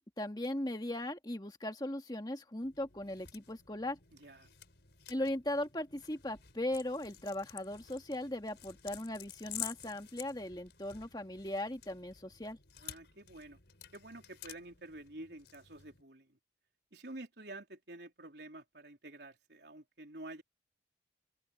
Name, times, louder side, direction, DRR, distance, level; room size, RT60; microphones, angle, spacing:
voice 1, 0.0-4.0 5.1-12.6, left 1 dB, 25° left, 1.9 m, -38 dB
sound 1, 2.6-16.0, left 12 dB, 80° left, 4.3 m, -51 dB
voice 2, 4.1-4.5 12.8-13.6 13.9-16.4 16.9-20.4, right 2 dB, 75° right, 3.7 m, -49 dB
open air
head